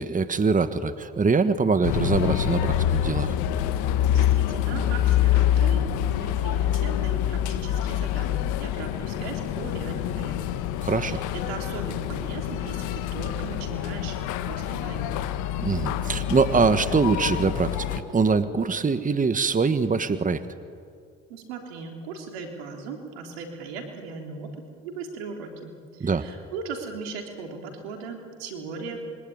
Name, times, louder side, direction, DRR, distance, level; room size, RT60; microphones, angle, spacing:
voice 1, 0.0-3.3 10.8-11.2 15.6-20.4 26.0-26.2, right 4 dB, 25° right, 11 dB, 1.5 m, -23 dB
sound 1, 1.8-18.0, left 11 dB, 75° left, 1.5 m, -26 dB
voice 2, 4.1-10.6 10.9-14.2 14.4-15.1 21.3-24.5 24.8-29.0, right 4 dB, 90° right, 3 dB, 3.6 m, -38 dB
26.0 x 23.0 x 9.7 m, 2.3 s
hypercardioid pair, 65°, 30 cm